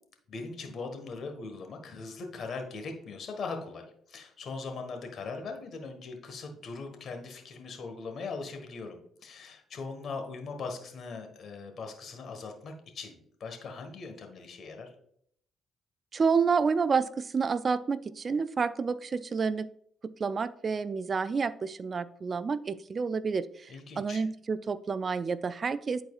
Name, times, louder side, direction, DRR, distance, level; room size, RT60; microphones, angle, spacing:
voice 1, 0.3-14.9 23.7-24.3, left 4 dB, 60° left, 5 dB, 1.4 m, -40 dB
voice 2, 16.1-19.7 20.0-23.7 24.0-26.0, right 5 dB, 45° right, 15 dB, 0.3 m, -29 dB
11.0 x 4.4 x 2.4 m, 0.67 s
supercardioid pair, 75°, 0 cm